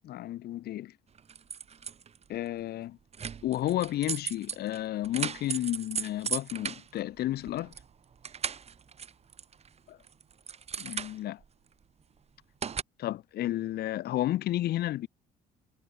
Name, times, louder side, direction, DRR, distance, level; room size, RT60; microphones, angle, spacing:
voice 1, 0.0-0.9 2.3-3.0 3.4-7.7 10.8-11.4 13.0-15.1, left 14 dB, 70° left, 2.9 m, -32 dB
sound 1, 1.2-2.2 3.1-7.9 8.1-9.7 10.0-11.5 12.6-12.8, right 7 dB, 40° right, 3.2 m, -37 dB
cardioid pair, 110°, 17 cm